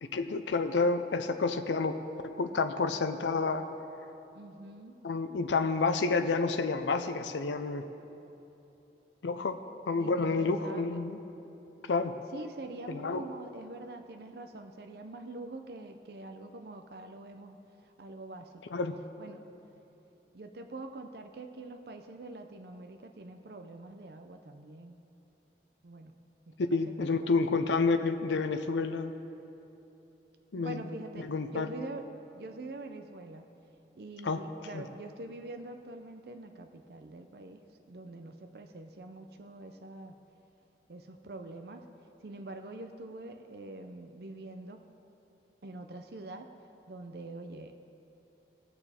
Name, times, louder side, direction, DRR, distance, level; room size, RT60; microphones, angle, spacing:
voice 1, 0.0-2.0 2.2-3.6 5.0-7.8 9.2-9.6 9.9-11.2 11.9-12.1 12.9-13.2 18.7-19.0 26.7-29.1 30.5-30.8 31.2-31.7 34.2-34.4 34.7-34.8, left 4 dB, 85° left, 8 dB, 0.5 m, -29 dB
voice 2, 4.3-5.0 10.0-11.1 12.3-17.6 18.0-18.8 19.2-19.4 20.3-25.0 25.8-26.1 26.5-27.5 30.5-32.1 32.3-33.5 34.0-37.6 37.9-40.2 40.9-41.8 42.2-44.8 45.6-46.5 46.9-47.7, right 2 dB, 60° right, 5 dB, 0.6 m, -45 dB
19.0 x 6.8 x 4.3 m, 3.0 s
head